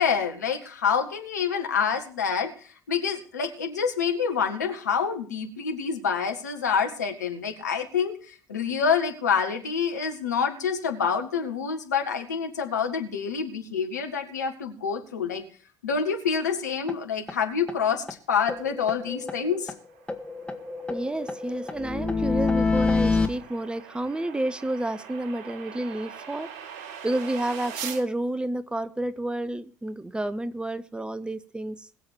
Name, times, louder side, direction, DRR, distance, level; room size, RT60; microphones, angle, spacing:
voice 1, 0.0-15.4 15.8-19.7, left 6 dB, 75° left, 1.7 m, -27 dB
sound 1, 16.9-17.0 17.3-17.4 17.7-17.8 18.1-18.2 18.5-19.8 20.1-23.3, left 4 dB, 10° left, 1.8 m, -27 dB
sound 2, 19.5-28.0, right 7 dB, 65° right, 1.3 m, -43 dB
voice 2, 20.9-26.5 27.0-31.9, right 1 dB, 10° right, 0.8 m, -30 dB
21.0 x 7.6 x 4.4 m
figure-of-eight pair, 55°, 9 cm